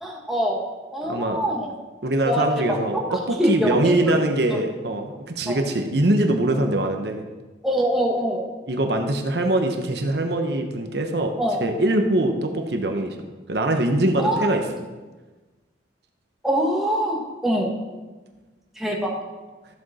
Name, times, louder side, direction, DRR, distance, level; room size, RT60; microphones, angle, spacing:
voice 1, 0.0-0.6 0.9-1.7 2.2-4.2 4.5-4.6 5.5-5.6 7.6-8.5 11.4-11.6 14.2-14.5 16.4-17.7 18.8-19.1, equal, ahead, -2 dB, 1.5 m, -24 dB
voice 2, 1.0-1.4 2.0-7.2 8.7-11.3 11.6-13.2 13.5-14.6, right 1 dB, 60° right, 4 dB, 1.0 m, -23 dB
13.5 x 7.8 x 4.3 m, 1.3 s
head